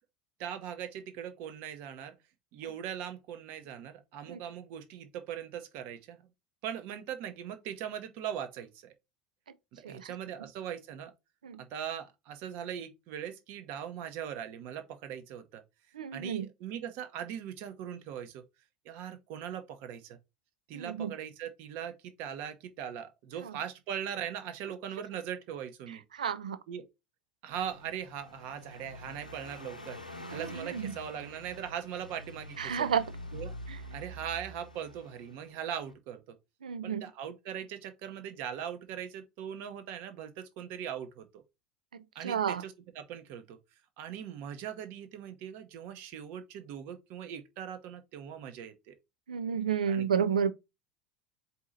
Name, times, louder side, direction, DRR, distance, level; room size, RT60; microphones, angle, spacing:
voice 1, 0.4-2.1 2.5-6.2 6.6-8.9 9.7-11.1 11.6-15.6 16.1-18.4 18.8-20.2 20.7-26.0 26.7-26.9 27.4-30.0 30.3-32.9 33.3-33.5 33.9-36.4 36.8-41.4 42.1-43.6 44.0-48.9 49.9-50.1, right 9 dB, 50° right, 0.9 m, -40 dB
voice 2, 15.9-16.5 20.7-21.1 23.4-23.5 25.9-26.6 30.3-31.0 32.6-33.1 33.7-33.8 36.6-37.0 41.9-42.6 49.3-50.5, right 7 dB, 70° right, 0.4 m, -32 dB
Car passing by, 27.5-35.9, left 1 dB, 85° left, 0.7 m, -46 dB
4.7 x 2.8 x 3.9 m
figure-of-eight pair, 75°, 4 cm